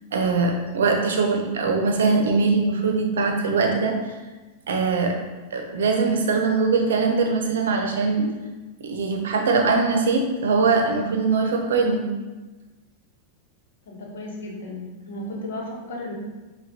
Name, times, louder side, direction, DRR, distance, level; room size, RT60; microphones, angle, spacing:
voice 1, 0.1-4.0 4.7-5.2 5.5-8.3 8.8-12.0, right 4 dB, 85° right, 3 dB, 0.6 m, -22 dB
voice 2, 13.9-16.1, left 1 dB, 85° left, -1 dB, 0.9 m, -34 dB
5.6 x 2.2 x 2.8 m, 1.2 s
hypercardioid pair, 115°, 0 cm